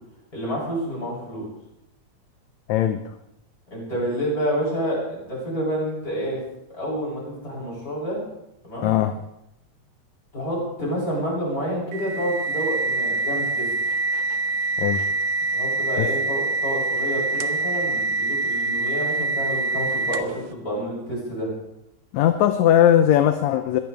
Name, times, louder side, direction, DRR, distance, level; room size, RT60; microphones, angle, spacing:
voice 1, 0.3-1.5 3.7-6.4 6.7-8.2 8.6-8.9 10.3-13.7 15.5-21.5, equal, 30° left, -4 dB, 8.4 m, -28 dB
voice 2, 2.7-3.0 8.8-9.1 14.8-15.0 16.0-16.1 22.1-23.8, left 11 dB, 75° left, 8 dB, 2.0 m, -19 dB
sound 1, 11.9-20.5, right 3 dB, 80° right, 2.3 m, -25 dB
22.5 x 16.5 x 3.5 m, 0.85 s
omnidirectional pair, 3.4 m